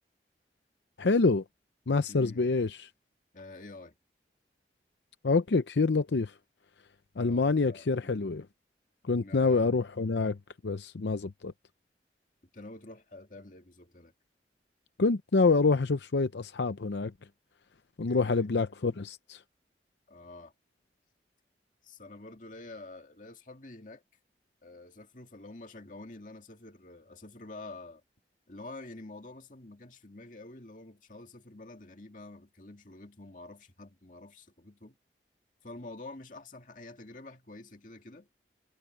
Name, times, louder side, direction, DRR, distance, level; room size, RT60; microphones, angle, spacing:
voice 1, 1.0-1.4 1.9-2.9 5.2-6.3 7.2-8.5 9.0-10.4 10.6-11.5 15.0-17.1 18.0-19.4, left 3 dB, 80° left, 0.6 m, -26 dB
voice 2, 2.1-2.5 3.3-4.0 7.2-8.3 9.2-9.7 12.5-14.1 18.1-18.5 20.1-20.5 21.8-24.0 24.6-28.0 28.5-35.0 35.6-38.3, left 2 dB, 45° left, 2.3 m, -48 dB
head